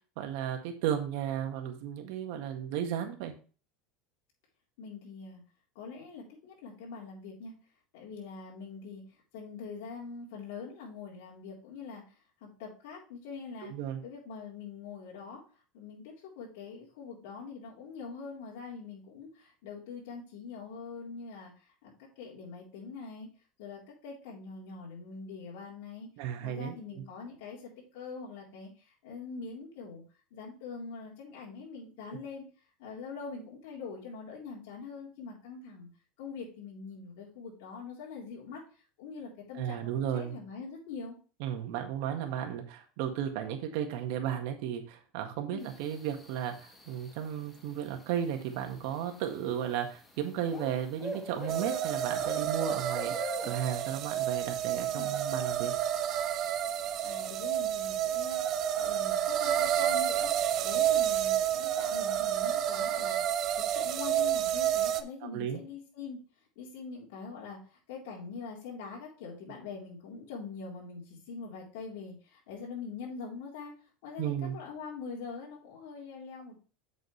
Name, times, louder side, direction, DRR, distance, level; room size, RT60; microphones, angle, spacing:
voice 1, 0.2-3.3 13.6-14.0 26.2-27.0 39.6-40.4 41.4-55.7 65.2-65.6 74.2-74.6, right 9 dB, 65° right, 4 dB, 1.8 m, -34 dB
voice 2, 4.8-5.4 5.8-7.5 7.9-12.0 12.4-13.7 14.0-15.4 15.7-23.3 23.6-26.1 26.4-30.0 30.3-32.5 32.8-35.9 36.2-38.6 39.0-41.2 45.5-45.7 54.9-55.1 57.0-66.2 66.6-73.7 74.0-76.6, left 5 dB, 75° left, -4 dB, 3.7 m, -44 dB
sound 1, 45.6-63.2, left 2 dB, 15° left, 1.9 m, -48 dB
sound 2, 51.5-65.0, right 11 dB, 45° right, 0.7 m, -30 dB
8.4 x 6.4 x 3.3 m, 0.37 s
supercardioid pair, 125°, 0 cm